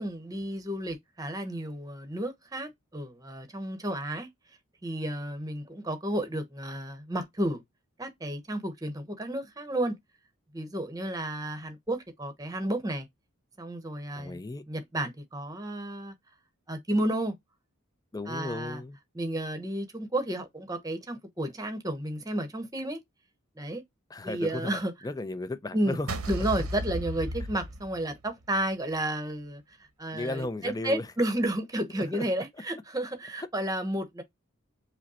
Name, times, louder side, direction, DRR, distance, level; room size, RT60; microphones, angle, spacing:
voice 1, 0.0-4.3 4.8-7.6 8.0-10.0 10.5-13.1 13.6-14.4 14.7-16.1 16.7-17.3 18.3-18.8 19.1-23.0 23.6-23.8 24.2-24.9 25.7-26.0 26.3-29.6 30.0-34.2, right 1 dB, 15° right, 0.9 m, -32 dB
voice 2, 14.2-14.6 18.1-19.0 24.1-26.5 30.1-31.1 32.1-32.3 33.4-33.5, left 2 dB, 15° left, 0.4 m, -35 dB
sound 1, 26.1-28.4, right 1 dB, 90° right, 1.0 m, -34 dB
5.1 x 2.1 x 4.0 m
head